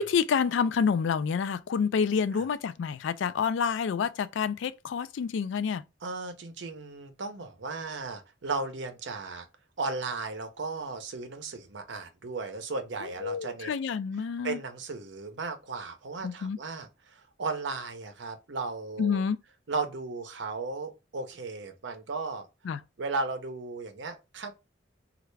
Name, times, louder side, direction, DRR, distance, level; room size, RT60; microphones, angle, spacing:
voice 1, 0.0-5.8 13.2-14.6 16.2-16.6 19.0-19.4 22.7-22.8, left 6 dB, 70° left, 0.3 m, -28 dB
voice 2, 6.0-9.5 9.8-13.7 14.4-19.2 19.7-22.5 23.0-24.5, right 3 dB, 65° right, 0.6 m, -35 dB
3.2 x 2.4 x 3.1 m
head